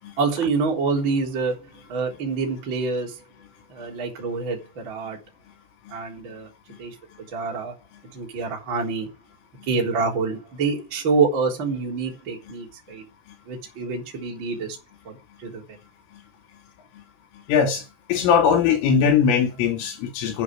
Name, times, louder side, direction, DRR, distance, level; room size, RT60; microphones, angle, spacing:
voice 1, 0.2-3.2 3.7-5.2 5.9-6.5 6.8-7.0 7.3-7.7 8.1-9.1 9.7-13.0 13.5-14.8 15.1-15.6, right 4 dB, 25° right, 3.7 m, -26 dB
voice 2, 17.5-17.8 18.1-20.4, left 7 dB, 75° left, 4.8 m, -20 dB
10.5 x 8.1 x 8.1 m
omnidirectional pair, 5.9 m